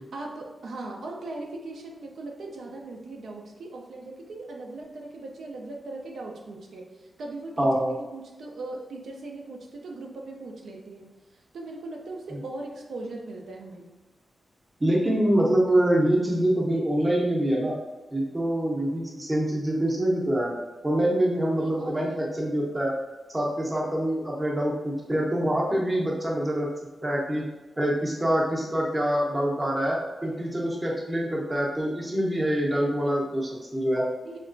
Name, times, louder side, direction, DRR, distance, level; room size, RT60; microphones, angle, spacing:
voice 1, 0.1-13.9 21.5-22.3 34.2-34.4, right 2 dB, 85° right, 0 dB, 0.5 m, -39 dB
voice 2, 7.6-7.9 12.3-12.4 14.8-17.8 18.1-20.5 20.8-22.9 23.3-26.7 27.0-27.4 27.8-34.1, right 1 dB, 15° right, -2 dB, 0.6 m, -25 dB
3.3 x 2.8 x 2.5 m, 1.1 s
wide cardioid pair, 150°, 0 cm